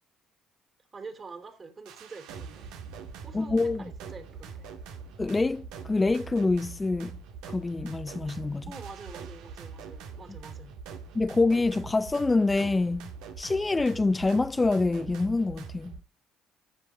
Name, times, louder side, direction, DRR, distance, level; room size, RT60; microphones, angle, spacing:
voice 1, 0.9-2.7 3.2-4.7 8.7-10.8, right 4 dB, 40° right, 3.4 m, -46 dB
sound 1, 1.9-16.0, right 5 dB, 80° right, 1.8 m, -43 dB
voice 2, 3.3-3.8 5.2-7.2 7.5-8.7 11.1-13.1 13.4-15.9, left 3 dB, 20° left, 0.5 m, -26 dB
14.0 x 6.1 x 5.1 m
supercardioid pair, 65°, 0 cm